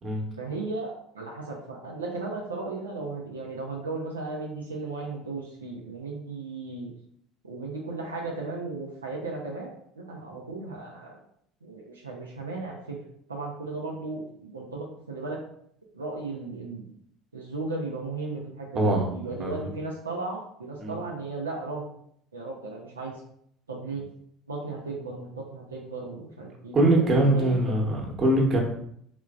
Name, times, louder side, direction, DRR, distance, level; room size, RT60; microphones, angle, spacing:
voice 1, 0.4-6.9 7.4-11.2 11.6-13.0 13.3-15.4 15.9-16.9 17.3-21.8 22.3-23.2 23.7-24.0 24.5-27.6, right 3 dB, 85° right, -2 dB, 0.5 m, -35 dB
voice 2, 18.7-19.6 20.8-20.9 26.7-28.6, right 1 dB, 35° right, -1 dB, 1.0 m, -23 dB
3.3 x 2.9 x 2.4 m, 0.68 s
figure-of-eight pair, 65°, 0 cm